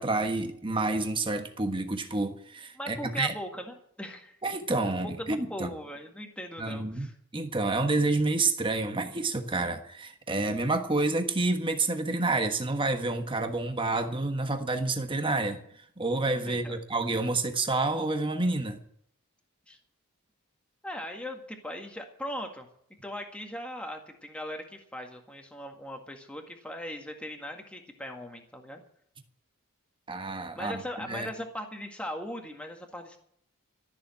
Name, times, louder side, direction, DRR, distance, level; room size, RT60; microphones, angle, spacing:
voice 1, 0.0-3.3 4.4-5.7 6.6-7.1 7.3-15.6 16.0-18.8 30.1-30.8 31.1-31.3, right 2 dB, 20° right, 1.3 m, -29 dB
voice 2, 2.8-4.4 5.0-7.1 16.5-16.8 19.7-19.8 20.8-22.7 23.0-28.8 30.6-33.2, equal, 5° left, 1.8 m, -39 dB
14.0 x 7.1 x 9.9 m
head